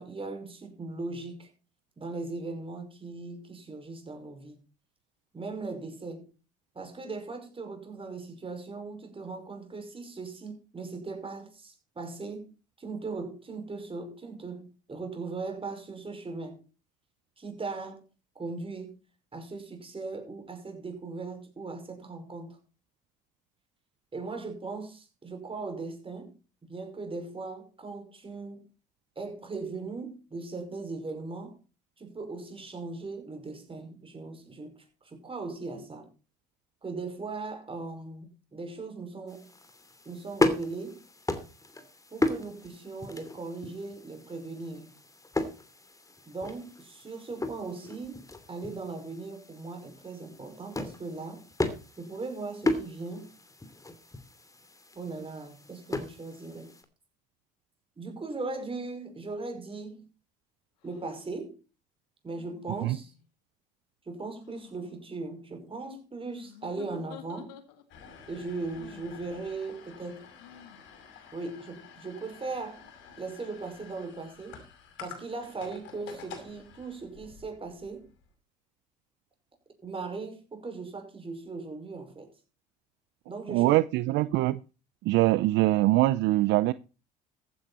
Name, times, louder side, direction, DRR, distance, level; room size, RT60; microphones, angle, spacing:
voice 1, 0.0-1.5 2.0-4.6 5.3-6.3 6.7-12.5 12.8-16.6 17.4-18.0 18.4-19.0 19.3-22.6 24.1-26.3 26.7-28.7 29.2-31.6 32.0-34.7 35.0-36.1 36.8-39.5 40.1-41.0 42.1-44.9 46.3-51.4 52.0-53.3 54.9-56.7 58.0-60.1 60.8-61.5 62.2-63.1 64.1-67.5 68.3-70.3 71.3-72.8 73.2-74.6 75.0-78.1 79.8-82.3 83.3-83.8 84.1-84.3, right 3 dB, 25° right, 5.7 m, -38 dB
sound 1, 39.3-56.8, left 2 dB, 15° left, 2.7 m, -35 dB
sound 2, 60.8-61.1 62.4-63.3 64.4-64.9 66.3-68.0 68.7-69.2 70.4-70.9, left 10 dB, 85° left, 2.0 m, -49 dB
sound 3, 67.9-78.3, left 6 dB, 70° left, 5.8 m, -49 dB
voice 2, 83.5-84.6 85.1-86.7, right 17 dB, 65° right, 0.6 m, -23 dB
15.0 x 9.5 x 4.3 m
hypercardioid pair, 65°, 20 cm